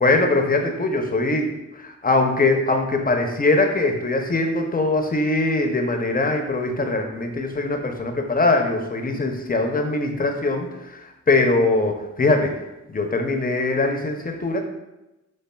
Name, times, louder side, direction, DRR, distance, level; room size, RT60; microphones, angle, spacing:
voice 1, 0.0-12.6 12.9-14.6, left 2 dB, 30° left, 4 dB, 0.5 m, -22 dB
4.2 x 3.1 x 2.2 m, 0.96 s
cardioid pair, 65°, 30 cm